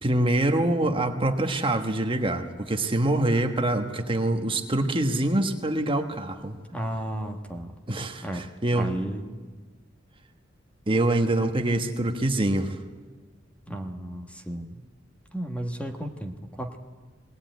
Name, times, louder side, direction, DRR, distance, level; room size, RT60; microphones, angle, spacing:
voice 1, 0.0-6.6 7.9-8.9 10.9-12.8, right 1 dB, 25° right, 5 dB, 1.3 m, -25 dB
voice 2, 6.7-7.7 8.2-8.5 8.7-9.4 13.7-14.8 15.3-16.8, right 1 dB, 5° left, 4 dB, 1.3 m, -33 dB
20.5 x 18.5 x 9.3 m, 1.4 s
head